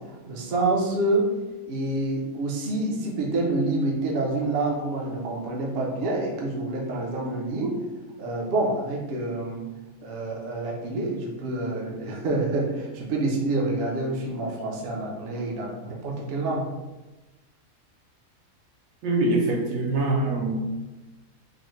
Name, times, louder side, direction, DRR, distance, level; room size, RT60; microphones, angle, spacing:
voice 1, 0.1-1.3 1.7-7.8 8.2-9.6 10.0-16.7, right 2 dB, 55° right, -1 dB, 0.7 m, -27 dB
voice 2, 19.0-20.5, right 2 dB, 70° right, 0 dB, 1.0 m, -24 dB
3.9 x 2.1 x 3.1 m, 1.1 s
omnidirectional pair, 1.5 m